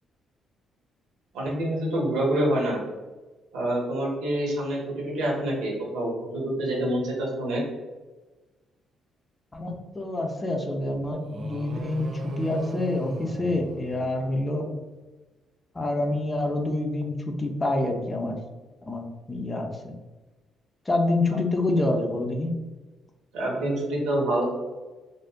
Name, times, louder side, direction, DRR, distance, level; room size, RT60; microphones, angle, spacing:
voice 1, 1.3-2.8 3.5-7.6 23.3-24.4, right 1 dB, 90° right, -3 dB, 0.9 m, -26 dB
voice 2, 9.5-14.7 15.7-18.4 18.8-19.9 20.9-22.6, left 2 dB, 25° left, 3 dB, 0.5 m, -27 dB
sound 1, 11.2-14.5, right 3 dB, 55° right, 0.3 m, -37 dB
2.5 x 2.1 x 3.4 m, 1.2 s
cardioid pair, 90°, 0 cm